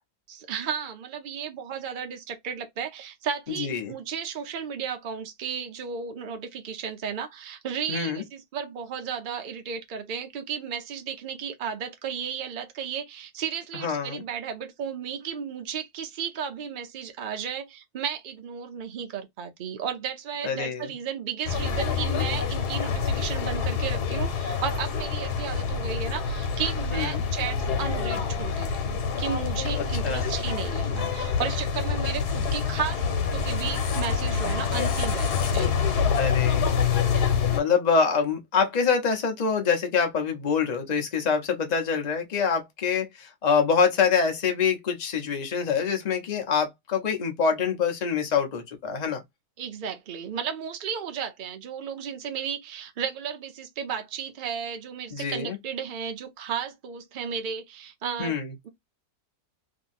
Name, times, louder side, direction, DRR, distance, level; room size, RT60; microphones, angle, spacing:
voice 1, 0.3-35.7 49.6-58.4 58.6-58.7, right 7 dB, 80° right, 0.4 m, -34 dB
voice 2, 3.5-3.9 7.9-8.2 13.7-14.2 20.4-20.9 26.9-27.2 29.7-30.3 36.2-36.8 37.5-49.2 55.1-55.6 58.2-58.5, left 6 dB, 40° left, 0.6 m, -25 dB
sound 1, 21.4-37.6, left 6 dB, 80° left, 1.4 m, -26 dB
2.9 x 2.6 x 2.4 m
omnidirectional pair, 1.7 m